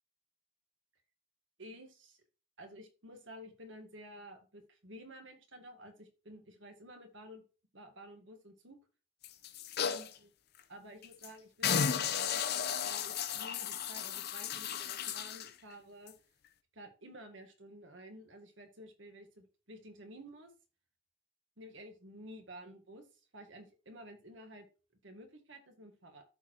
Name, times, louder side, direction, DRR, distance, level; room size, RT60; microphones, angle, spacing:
voice 1, 1.6-2.2 2.6-7.4 7.7-8.8 9.8-10.3 10.7-16.1 16.7-20.5 21.6-23.1 23.3-24.7 25.0-26.2, equal, 70° right, 5 dB, 1.7 m, -52 dB
sound 1, 9.2-10.1 10.6-10.7 11.0-11.3 11.6-15.5 16.1-16.2, left 7 dB, 50° left, 0.6 m, -34 dB
13.5 x 4.5 x 3.1 m, 0.34 s
head